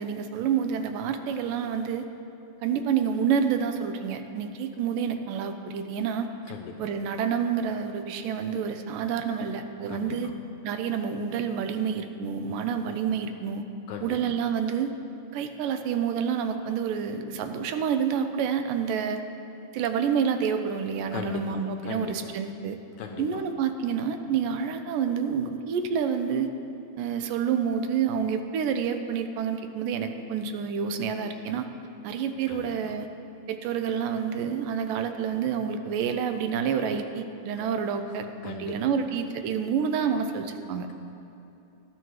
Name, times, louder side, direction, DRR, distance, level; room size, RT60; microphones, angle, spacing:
voice 1, 0.0-2.1 2.6-6.3 6.8-10.3 10.6-13.7 14.0-14.9 15.3-19.2 19.7-22.8 23.2-26.5 27.0-31.7 32.0-33.1 33.5-40.9, right 7 dB, 90° right, 7 dB, 2.4 m, -28 dB
voice 2, 6.5-6.8 9.9-10.3 13.9-14.2 21.1-22.3 23.0-23.4 32.5-32.7 37.6-37.7 38.4-38.8, left 6 dB, 75° left, 3 dB, 1.7 m, -38 dB
18.0 x 12.0 x 3.1 m, 2.9 s
omnidirectional pair, 3.8 m